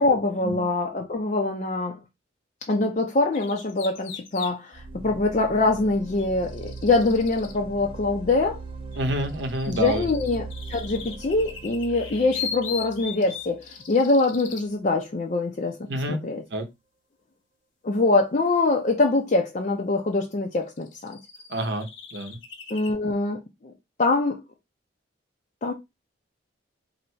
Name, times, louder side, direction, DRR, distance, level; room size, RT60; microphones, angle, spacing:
voice 1, 0.0-2.0 2.7-8.6 9.7-15.8 16.1-16.4 17.8-21.2 22.7-23.7 24.0-24.4 25.6-25.7, left 3 dB, 40° left, 0.5 m, -24 dB
sound 1, 3.3-4.5 6.2-7.6 8.9-14.7 19.0-19.1 20.2-20.3 20.7-22.9, left 7 dB, 80° left, 1.1 m, -39 dB
sound 2, 4.7-14.5, right 3 dB, 25° right, 0.4 m, -40 dB
voice 2, 9.0-10.1 15.9-16.2 16.5-16.7 21.5-22.4, right 1 dB, 60° right, 0.8 m, -28 dB
2.8 x 2.6 x 4.3 m
head